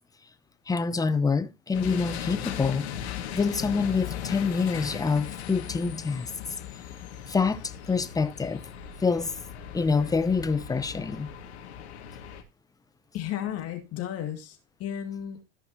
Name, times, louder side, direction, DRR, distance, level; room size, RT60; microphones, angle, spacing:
voice 1, 0.7-2.9 3.3-6.3 7.3-8.6 9.0-9.4 9.7-11.3, left 4 dB, 10° left, 0.8 m, -26 dB
sound 1, 1.7-12.4, left 9 dB, 80° left, 2.0 m, -38 dB
voice 2, 13.1-15.4, left 10 dB, 45° left, 2.2 m, -34 dB
14.0 x 5.8 x 2.9 m
hypercardioid pair, 95°, 33 cm